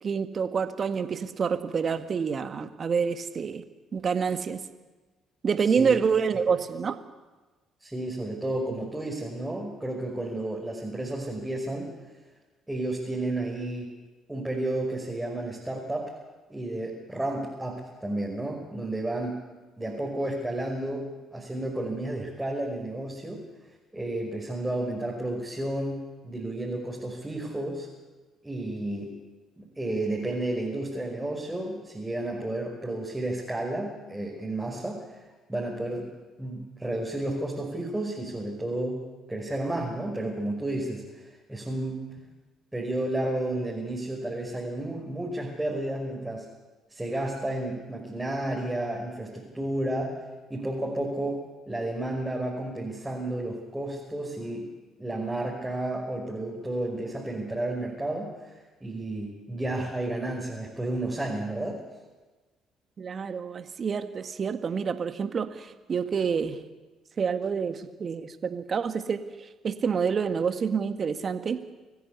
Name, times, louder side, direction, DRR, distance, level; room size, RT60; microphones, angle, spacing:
voice 1, 0.0-3.6 3.9-4.6 5.4-7.0 63.0-66.6 67.2-71.6, right 6 dB, 45° right, 9 dB, 1.7 m, -28 dB
voice 2, 7.8-11.9 12.7-13.9 14.3-16.0 16.5-19.4 19.8-21.0 21.3-23.4 23.9-27.9 28.4-29.1 29.6-35.2 35.5-41.2 41.5-42.1 42.7-46.5 46.9-50.2 50.5-54.7 55.0-58.5 58.8-61.8, right 1 dB, 10° right, -2 dB, 5.5 m, -32 dB
25.0 x 15.5 x 8.4 m, 1.2 s
hypercardioid pair, 50°, 0 cm